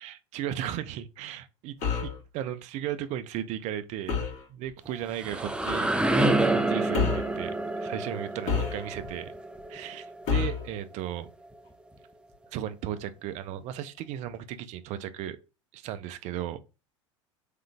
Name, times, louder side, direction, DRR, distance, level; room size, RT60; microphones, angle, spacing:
voice 1, 0.0-1.8 2.0-4.2 4.5-5.9 6.5-7.5 7.8-9.3 9.7-11.3 12.5-15.4 15.7-16.6, right 11 dB, 45° right, 0.6 m, -35 dB
sound 1, 1.8-2.2 4.1-4.4 5.7-5.9 6.9-7.3 8.5-9.1 10.3-10.7, left 6 dB, 50° left, 1.7 m, -29 dB
sound 2, 4.9-10.6, right 2 dB, 5° right, 0.5 m, -28 dB
3.8 x 3.2 x 3.5 m
hypercardioid pair, 85°, 16 cm